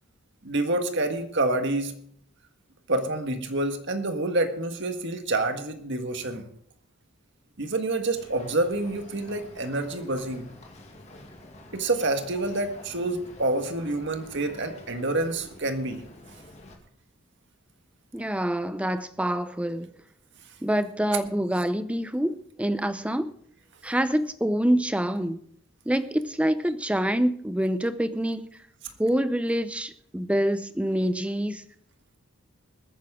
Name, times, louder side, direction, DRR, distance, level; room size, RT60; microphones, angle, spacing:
voice 1, 0.4-2.0 2.9-6.5 7.6-10.5 11.7-16.0, right 2 dB, 55° right, 7 dB, 1.7 m, -27 dB
Boat Water vehicle, 8.1-16.8, left 1 dB, 30° left, 2.2 m, -48 dB
voice 2, 18.1-19.9 20.6-23.3 23.8-25.4 25.9-28.5 29.0-31.6, right 1 dB, 5° right, 12 dB, 0.6 m, -26 dB
21.0 x 9.7 x 3.7 m, 0.63 s
head